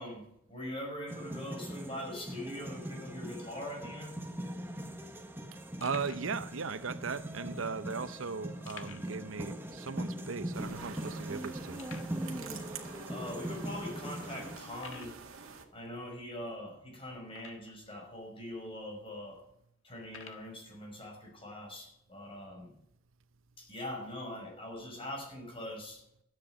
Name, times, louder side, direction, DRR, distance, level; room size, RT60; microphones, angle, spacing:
voice 1, 0.0-4.2 13.1-15.1 15.7-19.4 19.8-22.8 23.6-26.0, left 1 dB, 25° left, 5.6 m, -42 dB
sound 1, 1.1-14.6, right 1 dB, 10° right, 1.3 m, -41 dB
sound 2, 5.8-6.3 7.1-7.2 8.7-9.2 9.5-9.6 10.1-10.2 10.8-10.9 11.8-12.2 13.0-13.1 13.7-13.8 14.7-15.2 17.3-17.9 18.6-18.7 20.0-20.5, left 6 dB, 80° left, 1.5 m, -50 dB
voice 2, 5.8-11.8, right 5 dB, 75° right, 0.7 m, -38 dB
sound 3, 10.5-15.6, right 5 dB, 90° right, 1.9 m, -47 dB
13.5 x 9.0 x 8.1 m
head